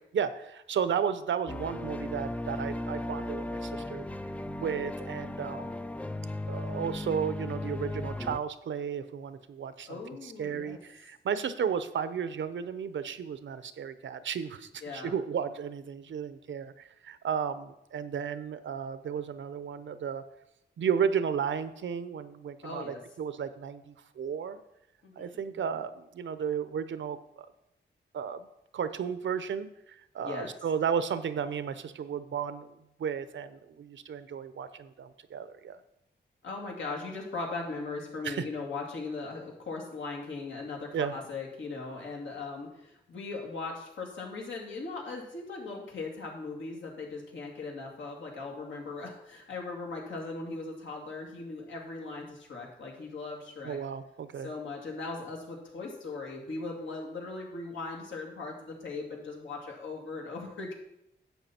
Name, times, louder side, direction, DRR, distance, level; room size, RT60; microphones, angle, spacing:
voice 1, 0.1-4.1 4.5-5.8 6.5-20.2 20.8-24.6 25.2-27.5 28.1-28.5 28.7-32.7 33.0-35.8 38.2-38.5 40.9-41.1 53.6-54.5, right 7 dB, 80° right, 12 dB, 0.7 m, -33 dB
sound 1, 1.5-8.4, left 1 dB, 5° left, 0.4 m, -36 dB
voice 2, 9.9-10.8 14.8-15.2 22.6-23.0 25.0-25.4 30.2-30.5 36.4-53.8 54.4-60.7, left 3 dB, 85° left, -1 dB, 2.6 m, -39 dB
11.0 x 7.7 x 4.4 m, 0.83 s
wide cardioid pair, 105°, 19 cm